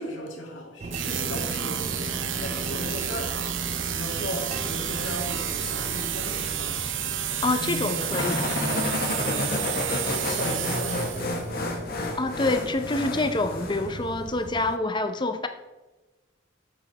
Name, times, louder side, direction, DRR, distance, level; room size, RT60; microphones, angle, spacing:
voice 1, 0.0-6.8 7.4-9.8 10.0-11.5, left 1 dB, 75° left, 2.3 m, -37 dB
sound 1, 0.8-14.8, right 2 dB, 35° right, 0.5 m, -38 dB
sound 2, 0.9-11.5, right 9 dB, 75° right, 0.8 m, -31 dB
voice 2, 7.4-8.5 12.1-15.5, left 2 dB, 25° left, 0.7 m, -26 dB
sound 3, 8.1-13.9, left 2 dB, 50° left, 1.5 m, -30 dB
8.7 x 7.3 x 4.1 m
head